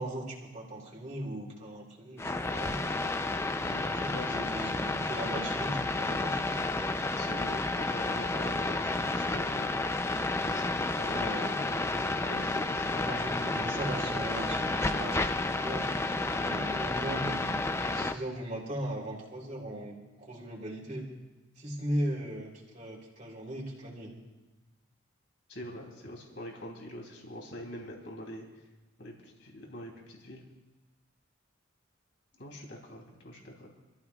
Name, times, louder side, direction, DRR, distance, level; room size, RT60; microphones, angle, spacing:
voice 1, 0.0-2.8 3.8-6.6 11.0-11.6 12.9-15.9 16.3-21.0 21.6-24.2, right 1 dB, 35° right, -4 dB, 3.5 m, -38 dB
sound 1, 2.2-18.1, left 2 dB, 15° left, 0.5 m, -31 dB
voice 2, 3.6-4.5 7.2-7.6 7.9-9.7 10.5-13.1 25.5-28.4 29.0-30.4 32.4-33.7, left 1 dB, 60° left, 0 dB, 3.1 m, -44 dB
27.0 x 14.5 x 2.4 m, 1.2 s
head